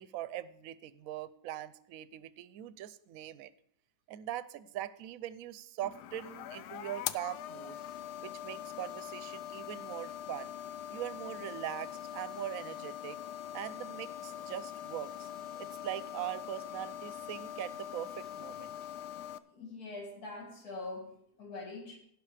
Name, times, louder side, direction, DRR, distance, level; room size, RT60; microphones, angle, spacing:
voice 1, 0.0-3.5 4.1-7.8 8.2-10.5 10.9-13.2 13.5-15.3 15.6-18.7, right 12 dB, 65° right, 15 dB, 1.0 m, -41 dB
sound 1, 5.8-19.4, left 10 dB, 85° left, 1.2 m, -43 dB
voice 2, 19.5-22.0, left 2 dB, 65° left, 0 dB, 2.7 m, -43 dB
16.5 x 5.8 x 4.9 m, 0.68 s
omnidirectional pair, 1.7 m